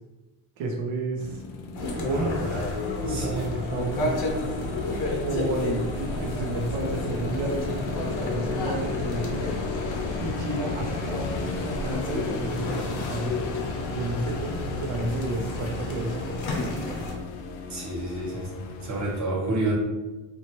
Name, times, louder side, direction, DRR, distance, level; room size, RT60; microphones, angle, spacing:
voice 1, 0.6-1.2 1.7-2.5 3.1-4.5 5.1-9.5 10.2-13.3 13.9-16.2, right 2 dB, 80° right, 1 dB, 0.8 m, -31 dB
sound 1, 1.2-19.2, left 4 dB, 90° left, 0.6 m, -37 dB
sound 2, 1.7-17.1, left 2 dB, 55° left, 0.8 m, -31 dB
voice 2, 2.1-2.7 3.1-3.5 12.1-12.3 17.7-18.5 18.8-19.7, right 2 dB, 40° right, -4 dB, 1.0 m, -30 dB
2.9 x 2.5 x 2.9 m, 1.1 s
cardioid pair, 145°, 46 cm